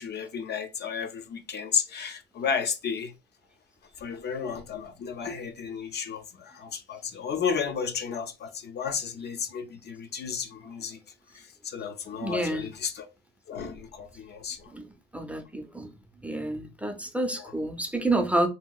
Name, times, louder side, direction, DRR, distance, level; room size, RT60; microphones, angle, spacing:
voice 1, 0.0-3.1 4.0-11.0 11.6-13.1 13.5-14.7 17.4-17.5, left 6 dB, 55° left, 0.6 m, -33 dB
voice 2, 12.2-12.7 14.7-14.9 15.1-15.9 16.2-18.5, right 2 dB, 5° right, 0.5 m, -29 dB
2.9 x 2.8 x 2.3 m
cardioid pair, 90°, 20 cm